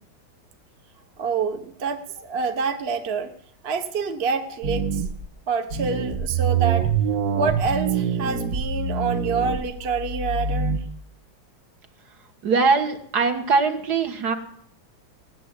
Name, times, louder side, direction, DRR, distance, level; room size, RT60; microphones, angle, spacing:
voice 1, 1.2-3.3 3.6-5.0 5.5-6.9 7.3-10.8, right 5 dB, 40° right, 7 dB, 1.1 m, -27 dB
Deep Dark Bass Slide, 4.6-5.3 5.7-10.8, right 6 dB, 75° right, 1.8 m, -25 dB
voice 2, 12.4-14.4, right 4 dB, 60° right, 7 dB, 1.9 m, -21 dB
17.5 x 7.9 x 9.8 m, 0.65 s
omnidirectional pair, 2.0 m